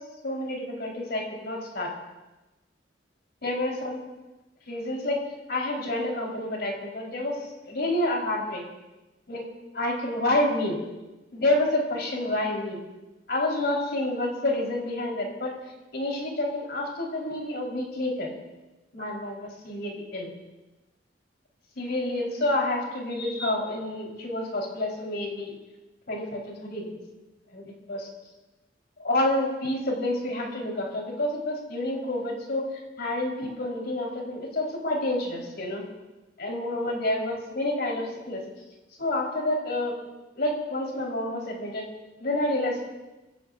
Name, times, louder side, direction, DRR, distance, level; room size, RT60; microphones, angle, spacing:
voice 1, 0.2-1.9 3.4-4.0 4.7-5.2 5.5-7.4 7.7-8.6 9.3-9.4 9.7-10.8 11.3-12.8 13.3-15.5 15.9-18.3 18.9-20.3 21.8-25.5 26.1-27.0 27.5-28.1 29.0-32.6 33.0-35.8 36.4-38.4 39.0-39.9 40.4-41.8 42.2-42.8, left 1 dB, 60° left, -1 dB, 4.7 m, -28 dB
25.5 x 16.0 x 2.7 m, 1.1 s
head